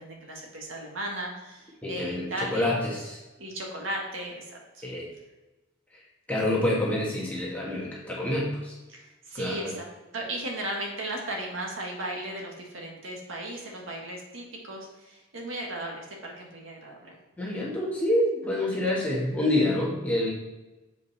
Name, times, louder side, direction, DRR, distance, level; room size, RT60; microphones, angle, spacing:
voice 1, 0.0-2.8 3.4-4.9 8.9-9.9 10.1-17.1 18.7-18.8, right 1 dB, 75° right, 0 dB, 1.7 m, -36 dB
voice 2, 1.8-3.2 4.8-5.0 6.3-8.7 9.3-9.7 17.4-20.3, left 1 dB, 5° left, -5 dB, 1.6 m, -27 dB
7.6 x 5.1 x 4.1 m, 1.1 s
head